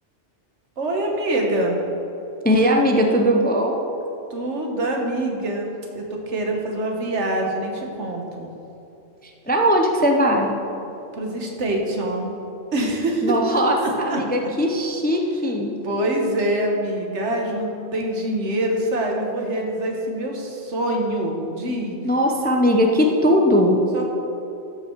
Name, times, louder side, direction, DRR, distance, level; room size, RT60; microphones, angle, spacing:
voice 1, 0.8-1.8 4.3-8.5 11.1-12.3 12.7-14.2 15.8-22.0 23.9-24.1, right 1 dB, 75° right, 1 dB, 1.5 m, -25 dB
voice 2, 2.4-3.8 9.5-10.5 13.2-15.7 22.0-23.9, equal, 10° left, 1 dB, 0.5 m, -19 dB
12.5 x 5.6 x 4.5 m, 2.9 s
omnidirectional pair, 1.2 m